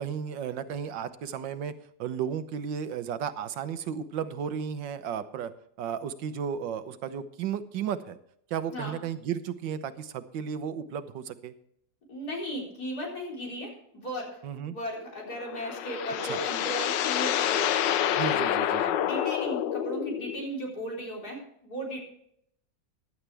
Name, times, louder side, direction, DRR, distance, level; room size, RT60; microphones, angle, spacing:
voice 1, 0.0-1.7 2.0-5.5 5.8-8.2 8.5-11.5 14.4-14.8 16.2-16.4 18.2-19.0, right 8 dB, 90° right, 12 dB, 1.6 m, -34 dB
voice 2, 12.1-14.4 14.7-22.0, equal, 55° left, -2 dB, 4.5 m, -36 dB
sound 1, 15.3-20.5, left 10 dB, 80° left, 1.4 m, -28 dB
16.0 x 11.0 x 3.4 m, 0.70 s
omnidirectional pair, 1.9 m